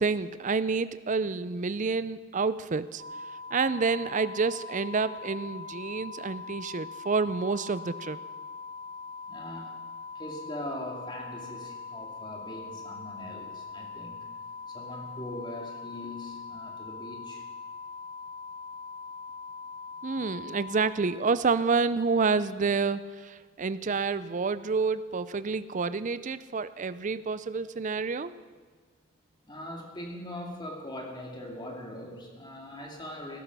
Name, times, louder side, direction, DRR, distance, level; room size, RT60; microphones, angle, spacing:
voice 1, 0.0-3.0 3.5-8.2 20.0-28.4, right 4 dB, 35° right, 14 dB, 0.5 m, -28 dB
sound 1, 3.0-20.9, left 4 dB, 65° right, 2.7 m, -42 dB
voice 2, 9.3-9.8 10.1-14.3 14.7-17.4 29.4-33.4, left 1 dB, 20° left, 0 dB, 2.3 m, -41 dB
18.0 x 11.0 x 6.1 m, 1.5 s
head